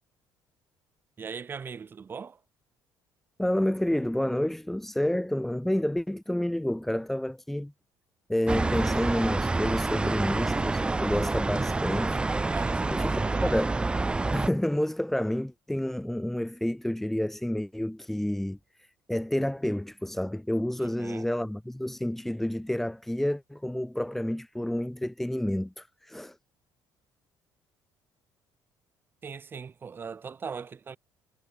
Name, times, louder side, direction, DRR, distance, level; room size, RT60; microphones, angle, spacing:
voice 1, 1.2-2.4 12.5-13.5 20.8-21.3 29.2-31.0, right 6 dB, 30° right, 6.2 m, -40 dB
voice 2, 3.4-7.7 8.3-12.2 12.9-13.8 14.3-26.4, left 1 dB, 5° left, 2.6 m, -29 dB
sound 1, 8.5-14.5, right 3 dB, 10° right, 1.5 m, -27 dB
cardioid pair, 150°, 8 cm